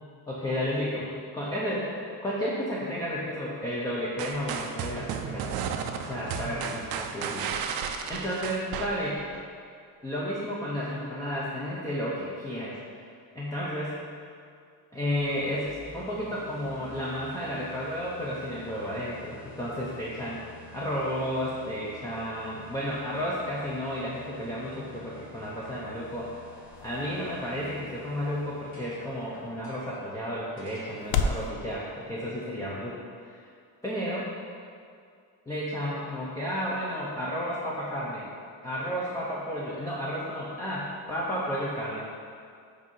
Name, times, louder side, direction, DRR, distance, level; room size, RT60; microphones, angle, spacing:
voice 1, 0.3-5.7 6.1-7.8 8.1-9.2 10.0-12.8 13.3-14.0 14.9-20.4 20.7-26.3 26.8-33.4 33.8-34.3 35.5-38.3 38.6-42.1, equal, 10° left, -7 dB, 0.7 m, -32 dB
sound 1, 4.2-9.4, right 7 dB, 75° right, 0.6 m, -34 dB
sound 2, 15.2-32.3, left 1 dB, 35° left, 1.5 m, -50 dB
sound 3, 25.2-31.5, left 5 dB, 85° left, 0.6 m, -36 dB
7.8 x 2.8 x 5.4 m, 2.3 s
cardioid pair, 145°, 36 cm